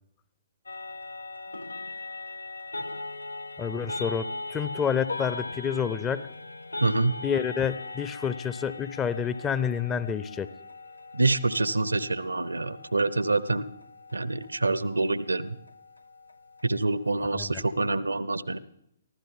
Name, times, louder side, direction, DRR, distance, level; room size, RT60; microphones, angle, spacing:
sound 1, 0.7-17.9, left 2 dB, 80° left, 0.5 m, -40 dB
voice 1, 3.6-6.3 7.2-10.5 17.3-17.6, left 7 dB, 15° left, 16 dB, 0.6 m, -29 dB
voice 2, 6.8-7.2 11.1-13.7 14.1-15.6 16.6-18.6, right 2 dB, 80° right, 17 dB, 0.8 m, -26 dB
23.0 x 15.0 x 3.7 m, 0.78 s
figure-of-eight pair, 125°, 0 cm